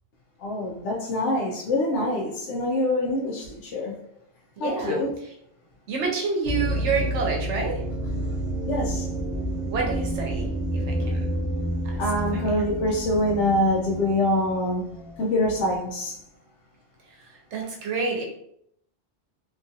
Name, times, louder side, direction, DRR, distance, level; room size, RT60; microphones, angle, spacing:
voice 1, 0.4-3.9 4.6-5.2 8.7-9.1 12.0-14.8 15.2-16.1, left 1 dB, 90° left, -2 dB, 0.9 m, -25 dB
voice 2, 4.6-5.0 5.9-7.7 9.7-10.5 10.7-11.3 12.3-12.5 17.5-18.2, right 4 dB, 80° right, 0 dB, 1.0 m, -28 dB
sound 1, 6.4-15.8, right 1 dB, 35° right, 0.6 m, -29 dB
2.9 x 2.4 x 2.6 m, 0.74 s
omnidirectional pair, 1.2 m